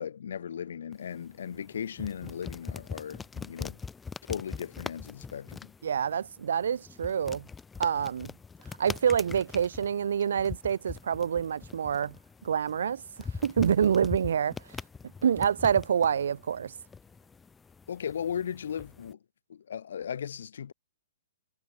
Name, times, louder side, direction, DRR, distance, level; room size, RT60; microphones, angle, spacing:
voice 1, 0.0-3.8 4.3-5.7 17.9-19.2 19.5-20.7, left 8 dB, 65° left, 0.4 m, -37 dB
sound 1, 0.9-19.1, left 5 dB, 5° left, 1.1 m, -43 dB
voice 2, 5.8-7.5 7.8-8.3 8.8-12.2 12.4-14.6 15.2-16.7, right 8 dB, 70° right, 0.7 m, -27 dB
hypercardioid pair, 165°, 0 cm